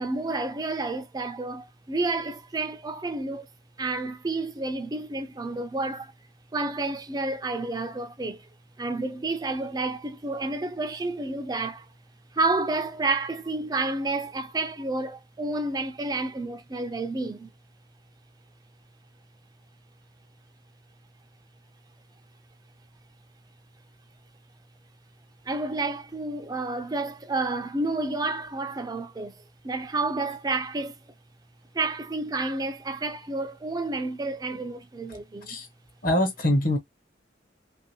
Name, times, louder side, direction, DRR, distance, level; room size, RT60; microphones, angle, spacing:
voice 1, 0.0-3.5 3.8-6.1 6.5-8.5 8.8-11.9 12.3-17.5 25.5-29.3 29.6-31.0 31.7-35.6, right 2 dB, 20° right, 0.4 m, -30 dB
voice 2, 36.0-36.8, left 1 dB, 50° left, 1.0 m, -23 dB
3.0 x 2.6 x 2.8 m
head